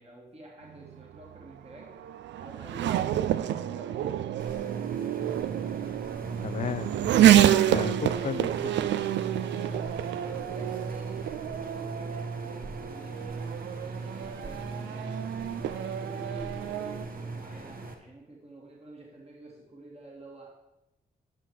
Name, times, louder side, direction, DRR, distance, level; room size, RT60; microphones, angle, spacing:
voice 1, 0.0-2.0 2.4-4.4 7.7-8.7 9.4-15.3 15.6-20.5, right 1 dB, 35° right, -2 dB, 2.0 m, -49 dB
Race car auto racing / Accelerating revving vroom, 0.8-17.1, right 11 dB, 85° right, 0.4 m, -28 dB
sound 1, 4.4-17.9, right 3 dB, 55° right, 1.4 m, -39 dB
voice 2, 6.4-8.5, left 7 dB, 45° left, 17 dB, 0.4 m, -34 dB
10.0 x 6.0 x 4.7 m, 0.93 s
supercardioid pair, 45°, 18 cm